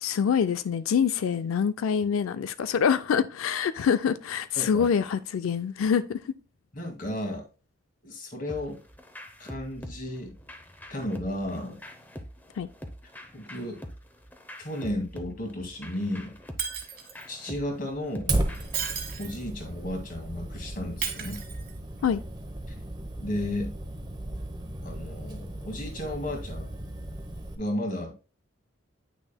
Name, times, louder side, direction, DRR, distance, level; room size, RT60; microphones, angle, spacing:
voice 1, 0.0-6.3 12.6-12.7 22.0-22.2, left 7 dB, 90° left, 0.4 m, -25 dB
voice 2, 4.6-4.9 6.7-7.5 8.0-8.8 9.4-10.3 10.9-11.8 13.3-13.8 14.6-16.4 17.3-18.3 19.2-21.4 23.2-23.7 24.8-26.7 27.6-28.1, left 1 dB, 45° left, 2.0 m, -33 dB
sound 1, 8.5-19.2, equal, 10° left, 0.7 m, -45 dB
Shatter, 16.6-17.3 18.5-19.5 21.0-22.0 24.2-24.4, right 8 dB, 45° right, 1.3 m, -34 dB
Fire, 18.3-27.5, right 1 dB, 20° right, 0.9 m, -35 dB
9.0 x 6.2 x 2.2 m
head